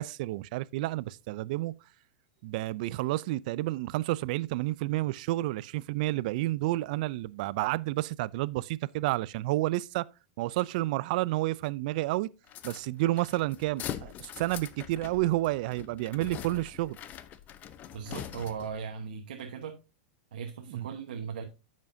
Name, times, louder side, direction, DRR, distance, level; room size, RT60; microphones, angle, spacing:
voice 1, 0.0-1.8 2.4-10.1 10.4-12.3 12.6-17.0 20.7-20.9, right 17 dB, 60° right, 0.4 m, -30 dB
sound 1, 12.5-18.8, left 10 dB, 35° left, 0.7 m, -43 dB
voice 2, 17.9-19.7 20.3-21.4, right 6 dB, 85° right, 1.1 m, -38 dB
10.5 x 7.3 x 2.7 m
hypercardioid pair, 120°, 5 cm